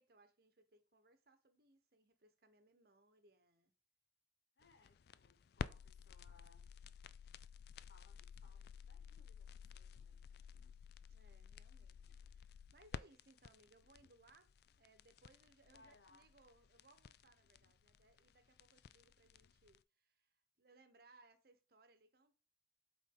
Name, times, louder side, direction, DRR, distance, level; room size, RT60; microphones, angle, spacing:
voice 1, 0.0-3.7 11.1-14.5 14.8-22.4, right 2 dB, 60° right, 1.2 m, -69 dB
voice 2, 4.6-6.7 7.9-10.3 15.7-16.3, left 3 dB, 85° left, 1.2 m, -69 dB
sound 1, 4.6-19.8, left 6 dB, 65° left, 0.3 m, -53 dB
8.1 x 4.1 x 3.9 m
head